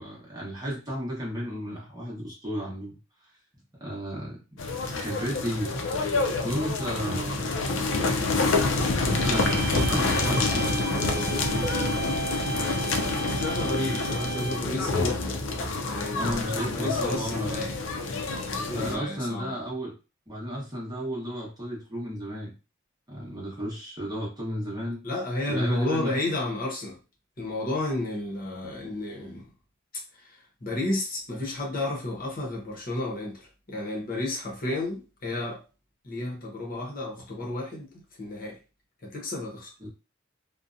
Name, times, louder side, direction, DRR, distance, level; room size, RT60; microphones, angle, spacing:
voice 1, 0.0-3.0 3.8-4.4 4.9-5.7 6.4-7.6 9.0-12.0 16.1-17.6 18.7-19.9 20.3-22.5 23.1-25.0 25.5-26.1 39.8-39.9, equal, 20° right, 0.9 m, -33 dB
sound 1, 4.6-19.0, left 3 dB, 65° left, 0.4 m, -27 dB
sound 2, 9.1-14.8, right 4 dB, 50° right, 0.4 m, -35 dB
sound 3, 10.9-16.3, equal, 10° left, 0.6 m, -39 dB
voice 2, 13.2-15.4 15.8-17.8 18.7-19.5 25.0-27.0 27.4-29.5 30.1-35.6 36.0-37.9 38.2-38.6 39.0-39.7, left 2 dB, 45° left, 0.8 m, -32 dB
2.6 x 2.1 x 2.5 m
head